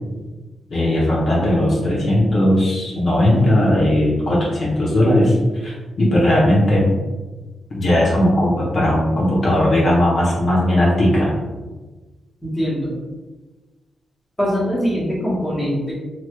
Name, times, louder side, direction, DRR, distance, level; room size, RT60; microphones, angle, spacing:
voice 1, 0.7-6.8 7.7-11.4, left 1 dB, 50° left, -6 dB, 0.8 m, -17 dB
voice 2, 12.4-13.0 14.4-15.9, equal, 10° left, -7 dB, 1.0 m, -22 dB
3.1 x 2.9 x 2.2 m, 1.2 s
wide cardioid pair, 125°, 0 cm